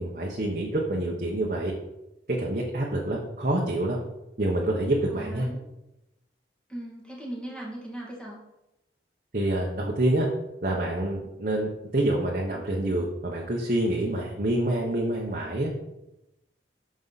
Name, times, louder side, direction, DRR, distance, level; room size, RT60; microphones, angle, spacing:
voice 1, 0.0-1.7 2.3-4.0 4.4-5.5 9.3-10.3 10.6-15.7, right 1 dB, 50° right, -2 dB, 1.1 m, -27 dB
voice 2, 5.1-5.6 6.7-8.4, right 1 dB, 5° left, -4 dB, 2.3 m, -38 dB
9.5 x 6.3 x 4.1 m, 0.93 s
head